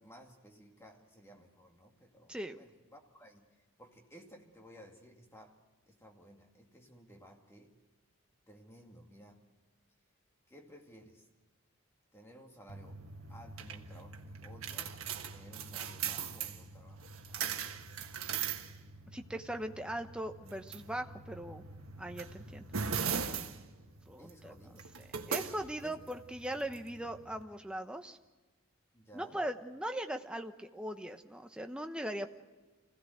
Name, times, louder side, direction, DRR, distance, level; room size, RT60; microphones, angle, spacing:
voice 1, 0.0-5.6 5.9-7.7 8.5-9.4 10.5-11.3 12.1-13.0 13.3-17.9 24.2-24.9 25.8-26.0 28.9-29.4, equal, 10° left, 1 dB, 2.3 m, -56 dB
voice 2, 2.3-2.6 19.1-21.6 22.0-22.6 24.1-24.5 25.0-28.2 29.1-32.3, right 1 dB, 5° right, 6 dB, 0.9 m, -40 dB
sound 1, 12.7-27.4, right 6 dB, 75° right, 1.5 m, -41 dB
25.5 x 17.0 x 7.9 m, 1.3 s
head